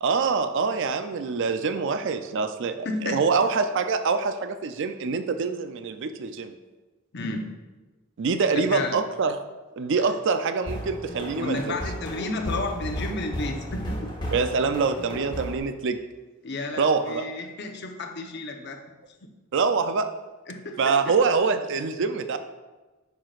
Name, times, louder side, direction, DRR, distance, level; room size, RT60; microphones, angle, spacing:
voice 1, 0.0-6.5 8.2-9.4 9.8-11.8 14.3-16.0 16.8-17.2 19.5-20.1 20.8-22.4, right 4 dB, 60° right, 9 dB, 0.4 m, -25 dB
voice 2, 2.8-3.2 7.1-7.5 8.5-9.0 11.4-14.1 16.4-18.8 20.5-21.1, left 2 dB, 55° left, 3 dB, 0.8 m, -32 dB
sound 1, 10.6-15.6, equal, 20° left, 1.2 m, -34 dB
9.7 x 5.8 x 2.4 m, 1.2 s
head